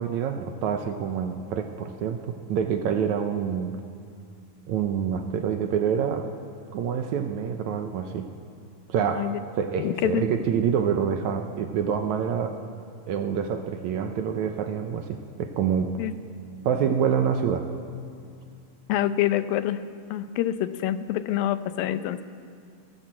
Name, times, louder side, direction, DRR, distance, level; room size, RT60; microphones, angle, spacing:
voice 1, 0.0-2.2 2.5-3.7 4.7-6.3 6.7-8.3 8.9-9.3 9.6-12.6 13.1-15.9 16.7-17.7, right 7 dB, 75° right, 6 dB, 1.9 m, -26 dB
voice 2, 9.0-9.4 9.8-10.2 16.0-16.1 18.9-19.8 20.1-22.2, left 12 dB, 85° left, 12 dB, 2.6 m, -26 dB
28.5 x 12.0 x 7.5 m, 2.3 s
omnidirectional pair, 4.0 m